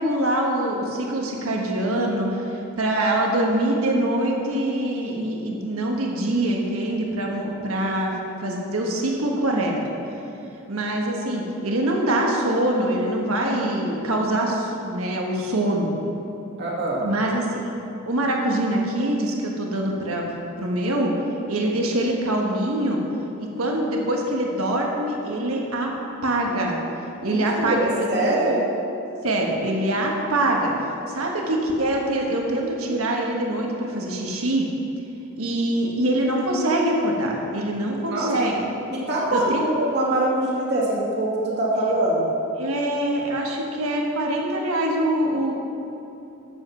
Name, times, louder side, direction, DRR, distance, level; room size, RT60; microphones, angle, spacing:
voice 1, 0.0-8.1 8.4-9.7 10.7-15.9 17.0-17.7 18.0-20.3 20.6-21.1 21.5-23.0 23.6-25.9 26.2-26.8 27.2-28.1 29.2-30.7 31.1-34.7 35.3-38.6 39.3-39.6 41.8-41.9 42.6-45.5, right 1 dB, 85° right, 0 dB, 1.4 m, -24 dB
voice 2, 16.6-17.1 27.2-28.6 38.1-38.3 38.9-42.3, right 1 dB, 55° right, -5 dB, 2.2 m, -23 dB
8.8 x 7.6 x 5.7 m, 2.8 s
head